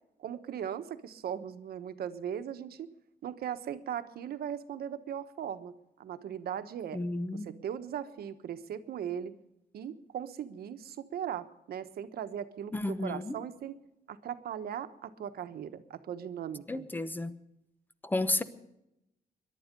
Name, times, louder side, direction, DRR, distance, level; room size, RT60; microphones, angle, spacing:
voice 1, 0.2-2.9 3.2-7.0 7.3-9.3 9.7-13.8 14.1-16.9, right 9 dB, 85° right, 1.2 m, -38 dB
voice 2, 6.9-7.5 12.7-13.3 16.7-17.3 18.0-18.4, left 2 dB, 10° left, 0.9 m, -32 dB
22.5 x 11.5 x 5.3 m
wide cardioid pair, 145°, 16 cm